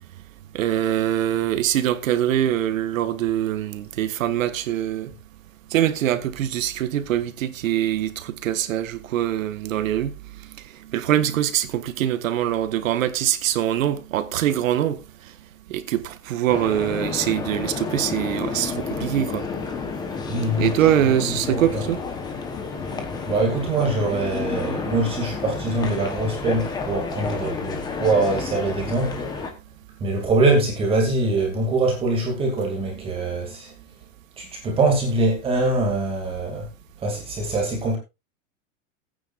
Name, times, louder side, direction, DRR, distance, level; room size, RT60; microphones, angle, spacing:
voice 1, 0.5-5.1 5.7-10.2 10.5-15.0 15.7-19.5 20.6-22.0, right 11 dB, 85° right, 1.5 m, -23 dB
sound 1, 16.5-29.5, left 5 dB, 10° left, 0.9 m, -30 dB
voice 2, 20.3-20.7 21.2-21.8 23.3-29.2 30.0-33.7 34.4-36.7 37.0-38.0, right 2 dB, 15° right, 2.3 m, -23 dB
18.5 x 9.2 x 2.5 m
supercardioid pair, 175°, 39 cm